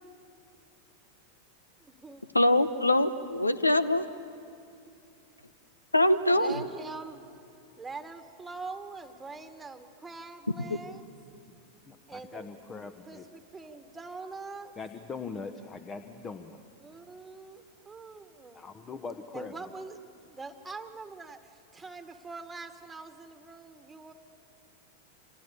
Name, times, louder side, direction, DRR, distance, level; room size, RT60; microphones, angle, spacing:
voice 1, 1.8-2.3 6.3-7.3 7.8-11.1 12.1-12.5 13.1-14.7 16.8-18.7 19.3-24.1, right 4 dB, 10° right, 8 dB, 1.7 m, -44 dB
voice 2, 2.3-4.0 5.9-6.6, left 1 dB, 85° left, 15 dB, 0.9 m, -23 dB
voice 3, 11.8-13.3 14.8-16.6 18.5-19.6, left 4 dB, 20° left, 10 dB, 1.1 m, -41 dB
29.0 x 26.5 x 6.9 m, 2.5 s
figure-of-eight pair, 90°, 0 cm